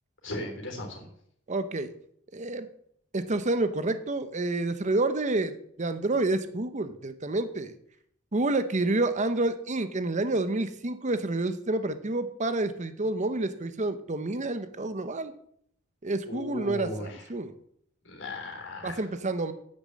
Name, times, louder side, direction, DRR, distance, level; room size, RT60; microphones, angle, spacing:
voice 1, 0.2-1.1 16.3-17.2 18.0-19.0, left 1 dB, 65° left, 1 dB, 3.5 m, -37 dB
voice 2, 1.5-1.9 2.3-2.7 3.1-7.7 8.3-15.3 16.0-17.5 18.8-19.5, right 2 dB, 35° right, 11 dB, 0.8 m, -29 dB
9.6 x 6.7 x 7.6 m, 0.68 s
head